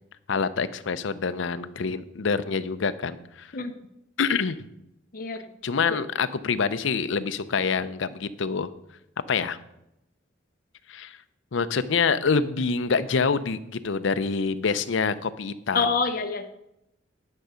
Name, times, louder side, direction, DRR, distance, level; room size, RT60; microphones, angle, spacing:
voice 1, 0.3-3.5 4.2-4.6 5.6-8.7 9.3-9.6 10.9-11.2 11.5-15.9, left 5 dB, 70° left, 12 dB, 0.6 m, -26 dB
voice 2, 15.7-16.5, left 4 dB, 45° left, 5 dB, 0.8 m, -26 dB
10.5 x 6.5 x 5.0 m, 0.85 s
head